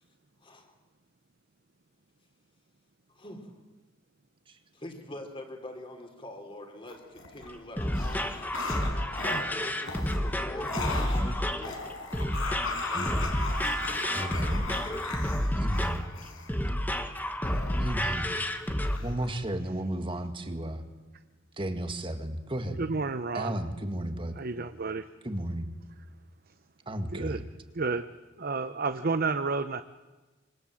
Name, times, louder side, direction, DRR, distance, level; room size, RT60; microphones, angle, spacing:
voice 1, 0.4-0.7 3.1-3.5 4.7-12.0 12.9-13.3 14.2-14.6, left 1 dB, 25° left, 4 dB, 3.7 m, -44 dB
sound 1, 6.9-7.5 7.8-16.5 17.4-18.5 18.9-19.3, left 3 dB, 80° left, 5.4 m, -38 dB
sound 2, 7.5-19.0, equal, 10° left, 1.4 m, -30 dB
voice 2, 12.9-13.4 14.1-14.6 15.6-16.0 17.2-17.3 17.8-18.3 18.9-20.8 21.6-22.8 23.3-24.4 25.2-25.7 26.9-27.5, right 1 dB, 25° right, 7 dB, 1.9 m, -33 dB
voice 3, 22.8-23.5 24.4-25.0 27.1-27.4 27.8-28.0 28.4-29.8, right 4 dB, 45° right, 10 dB, 0.8 m, -30 dB
26.0 x 24.5 x 7.8 m, 1.2 s
head